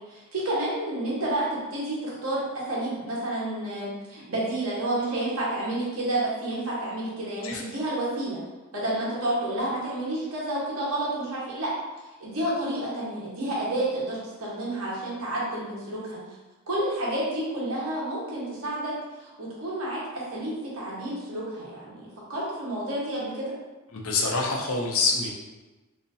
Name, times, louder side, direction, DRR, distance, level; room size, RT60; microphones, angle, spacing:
voice 1, 0.1-1.5 1.7-8.4 8.7-11.7 12.2-16.2 16.7-18.9 19.2-23.5, right 1 dB, 75° right, -6 dB, 1.2 m, -30 dB
voice 2, 23.9-25.3, left 4 dB, 75° left, -1 dB, 0.7 m, -26 dB
4.0 x 2.9 x 2.7 m, 1.2 s
head